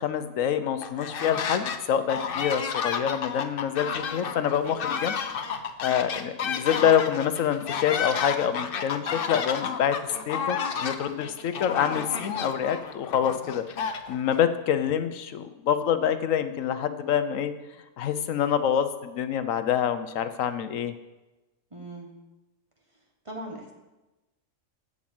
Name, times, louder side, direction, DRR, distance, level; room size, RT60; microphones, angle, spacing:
voice 1, 0.0-5.1 5.8-10.0 10.3-13.6 14.1-17.5 18.0-20.9, left 9 dB, 75° left, 11 dB, 1.0 m, -26 dB
sound 1, 0.8-1.8 2.1-14.4, left 6 dB, 50° left, 0.8 m, -31 dB
voice 2, 21.7-22.1 23.2-23.7, right 1 dB, 25° right, 0 dB, 1.5 m, -39 dB
7.9 x 7.3 x 7.8 m, 1.1 s
omnidirectional pair, 1.4 m